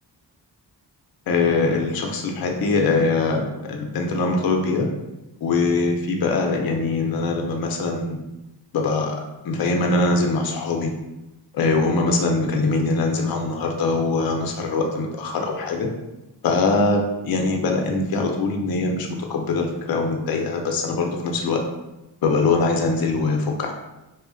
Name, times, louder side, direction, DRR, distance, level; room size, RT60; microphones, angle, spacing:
voice 1, 1.3-4.9 5.4-8.2 8.7-9.2 9.4-10.9 11.5-15.9 16.4-21.6 22.2-23.7, left 3 dB, 60° left, 2 dB, 0.5 m, -22 dB
2.7 x 2.1 x 2.5 m, 0.98 s
wide cardioid pair, 120°, 43 cm